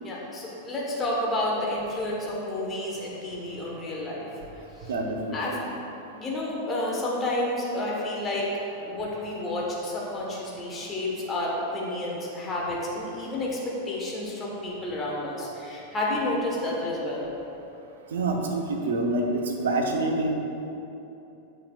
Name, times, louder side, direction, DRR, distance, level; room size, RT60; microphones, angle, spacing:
voice 1, 0.0-4.3 4.8-4.9 5.3-5.6 6.2-17.3, left 1 dB, 20° left, -4 dB, 1.4 m, -30 dB
voice 2, 4.9-5.6 18.1-20.3, right 2 dB, 65° right, 2 dB, 0.8 m, -27 dB
8.7 x 5.9 x 2.5 m, 2.9 s
figure-of-eight pair, 90°, 0 cm